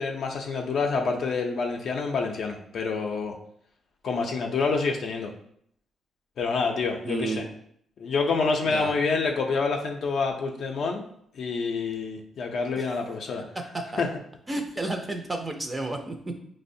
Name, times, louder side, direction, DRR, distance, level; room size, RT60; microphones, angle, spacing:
voice 1, 0.0-3.3 4.0-5.3 6.4-7.4 8.0-11.0 11.3-13.4 14.0-14.1, left 4 dB, 65° left, 2 dB, 0.4 m, -27 dB
voice 2, 7.0-7.5 8.6-8.9 12.8-12.9 13.5-14.0 14.5-16.3, right 2 dB, 20° right, 4 dB, 0.4 m, -31 dB
4.8 x 2.0 x 2.6 m, 0.68 s
cardioid pair, 110°, 0 cm